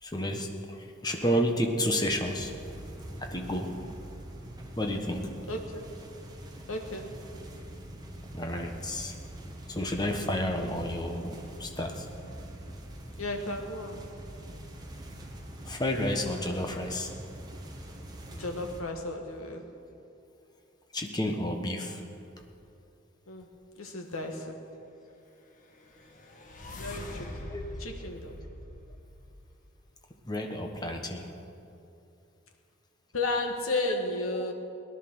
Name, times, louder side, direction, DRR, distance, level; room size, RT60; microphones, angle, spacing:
voice 1, 0.0-2.5 3.2-3.7 4.8-5.2 8.3-9.1 9.7-12.1 15.6-17.1 20.9-22.0 27.5-27.6 30.2-31.3 33.9-34.0 34.3-34.5, equal, 20° left, 3 dB, 1.2 m, -31 dB
sound 1, 2.1-18.8, right 1 dB, 20° right, 1.4 m, -44 dB
voice 2, 5.5-5.9 6.7-7.1 13.2-14.0 18.4-19.6 23.3-23.5 23.8-24.6 26.8-27.5 27.8-28.4 33.1-34.5, left 2 dB, 85° left, 3 dB, 1.7 m, -33 dB
sound 2, 25.6-29.8, left 1 dB, 40° left, 1.4 m, -43 dB
18.0 x 11.0 x 6.3 m, 2.7 s
head